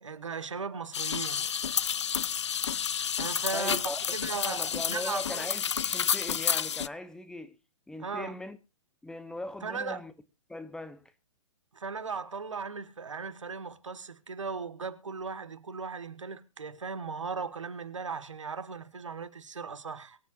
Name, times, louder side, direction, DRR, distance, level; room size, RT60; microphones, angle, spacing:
voice 1, 0.0-1.5 3.2-5.5 8.0-8.4 9.6-10.0 11.7-20.2, right 5 dB, 70° right, 1.4 m, -37 dB
sound 1, 0.9-6.9, left 8 dB, 65° left, 0.5 m, -30 dB
voice 2, 3.5-4.0 4.4-7.6 7.9-8.6 9.0-10.1 10.5-11.1, left 1 dB, 5° left, 0.8 m, -39 dB
24.0 x 8.1 x 2.4 m
figure-of-eight pair, 115°, 16 cm